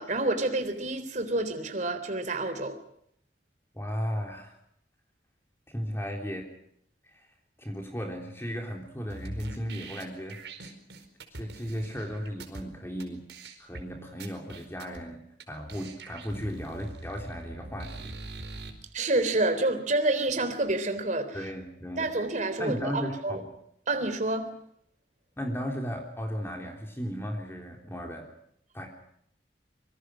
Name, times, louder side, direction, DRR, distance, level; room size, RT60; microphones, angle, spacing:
voice 1, 0.0-2.8 18.9-21.4 22.0-23.4 23.9-24.5, right 2 dB, 45° right, 8 dB, 3.6 m, -28 dB
voice 2, 3.7-4.5 5.7-6.5 7.0-7.3 7.6-10.4 11.3-13.3 13.6-15.2 15.5-18.1 21.3-22.1 22.6-23.5 25.4-28.3 28.7-28.9, equal, 15° left, 1 dB, 3.7 m, -35 dB
sound 1, 9.1-12.6 13.0-13.1 13.3-13.8 14.2-15.0 15.4-15.5 15.7-18.7, right 2 dB, 80° right, 4.8 m, -43 dB
26.5 x 24.5 x 6.4 m, 0.71 s
head